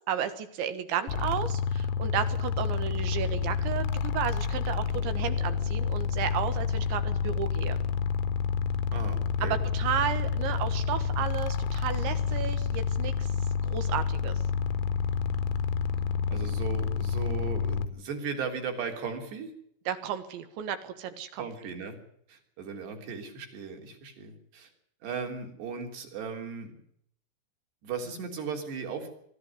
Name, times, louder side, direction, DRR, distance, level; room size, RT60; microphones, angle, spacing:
voice 1, 0.1-7.8 9.4-13.3 13.7-14.4 19.9-21.5, right 9 dB, 70° right, 10 dB, 3.5 m, -33 dB
sound 1, 1.1-17.9, left 6 dB, 80° left, 3.5 m, -29 dB
voice 2, 8.9-9.6 16.3-19.5 21.4-22.0 22.3-24.7 25.0-26.7 27.8-29.1, right 5 dB, 55° right, 4 dB, 5.3 m, -37 dB
24.0 x 13.0 x 9.6 m, 0.69 s
omnidirectional pair, 5.9 m